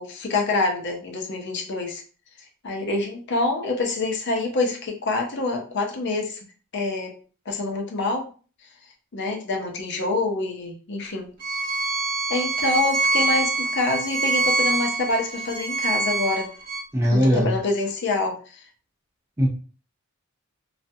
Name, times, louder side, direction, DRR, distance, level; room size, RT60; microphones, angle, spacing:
voice 1, 0.0-2.0 2.6-6.4 6.7-7.2 7.5-8.3 9.1-11.8 12.3-16.5 17.1-18.6, left 3 dB, 55° left, 1 dB, 0.6 m, -26 dB
Bowed string instrument, 11.4-16.8, right 3 dB, 40° right, 0.8 m, -25 dB
voice 2, 16.9-17.5 19.4-19.5, equal, 15° right, -1 dB, 0.5 m, -19 dB
2.4 x 2.2 x 2.6 m, 0.38 s
head